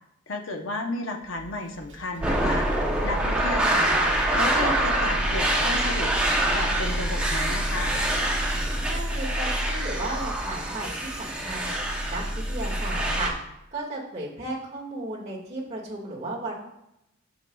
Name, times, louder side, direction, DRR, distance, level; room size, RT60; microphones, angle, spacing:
voice 1, 0.3-4.0 4.3-6.1 6.5-8.0, left 2 dB, 70° left, 4 dB, 0.8 m, -32 dB
sound 1, 1.2-11.1, right 1 dB, 65° right, 1.3 m, -47 dB
sound 2, 2.2-13.3, right 1 dB, 5° right, 0.7 m, -25 dB
voice 2, 8.8-11.7 12.1-13.3 13.7-16.5, right 2 dB, 30° right, -4 dB, 1.7 m, -34 dB
7.7 x 6.6 x 2.3 m, 0.86 s
head